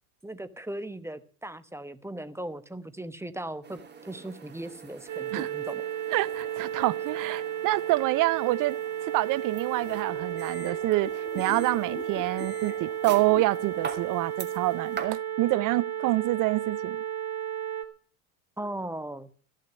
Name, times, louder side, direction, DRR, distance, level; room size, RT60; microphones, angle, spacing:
voice 1, 0.2-5.8 6.8-6.9 18.6-19.3, right 1 dB, 5° right, 1.0 m, -38 dB
sound 1, 3.6-15.1, right 6 dB, 25° right, 2.8 m, -44 dB
sound 2, 5.1-17.8, right 10 dB, 80° right, 2.0 m, -33 dB
sound 3, 6.1-14.0, left 4 dB, 20° left, 2.2 m, -45 dB
voice 2, 6.1-8.8 9.1-17.0, right 18 dB, 45° right, 0.6 m, -27 dB
15.0 x 6.6 x 9.5 m
hypercardioid pair, 90°, 44 cm